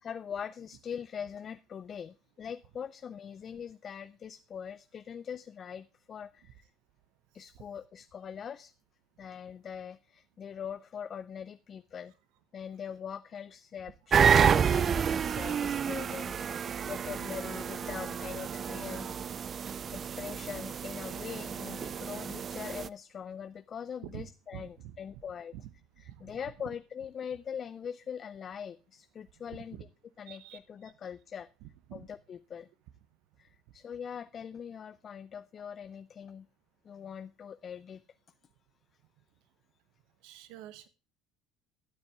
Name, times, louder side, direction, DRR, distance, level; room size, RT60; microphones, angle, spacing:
voice 1, 0.0-6.7 7.3-8.7 9.2-12.1 12.5-19.1 19.9-25.6 26.0-29.9 30.2-31.5 31.9-32.7 33.4-36.5 36.8-38.0, left 7 dB, 45° left, 14 dB, 0.4 m, -42 dB
sound 1, 14.1-22.9, right 7 dB, 40° right, 0.4 m, -29 dB
voice 2, 24.5-24.9 30.3-30.6 31.9-32.1 40.2-40.9, right 13 dB, 70° right, 13 dB, 1.1 m, -46 dB
11.5 x 9.5 x 3.5 m, 0.33 s
hypercardioid pair, 65°, 0 cm